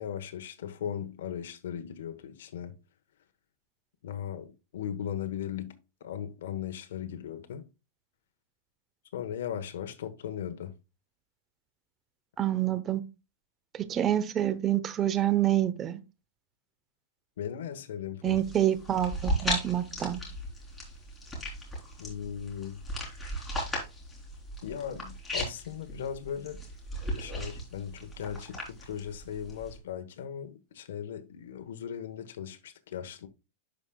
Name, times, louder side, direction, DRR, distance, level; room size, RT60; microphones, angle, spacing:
voice 1, 0.0-2.8 4.0-5.7 6.0-7.7 9.1-10.7 17.4-18.4 22.0-22.8 24.6-26.6 27.2-33.3, left 9 dB, 75° left, 1.1 m, -38 dB
voice 2, 12.4-13.0 13.7-16.0 18.2-20.2, right 12 dB, 20° right, 0.8 m, -27 dB
sound 1, 18.3-29.8, equal, 10° left, 3.3 m, -37 dB
11.5 x 4.9 x 2.3 m
supercardioid pair, 155°, 0 cm